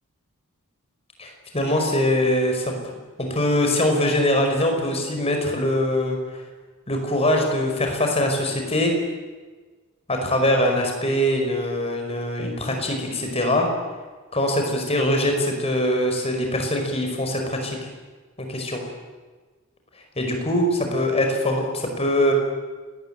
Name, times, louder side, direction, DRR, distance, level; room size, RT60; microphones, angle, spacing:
voice 1, 1.2-2.8 3.2-6.4 6.9-8.9 10.1-13.7 14.3-17.8 18.4-18.8 20.2-22.3, left 1 dB, 25° left, 3 dB, 5.2 m, -22 dB
28.0 x 20.0 x 9.0 m, 1.4 s
head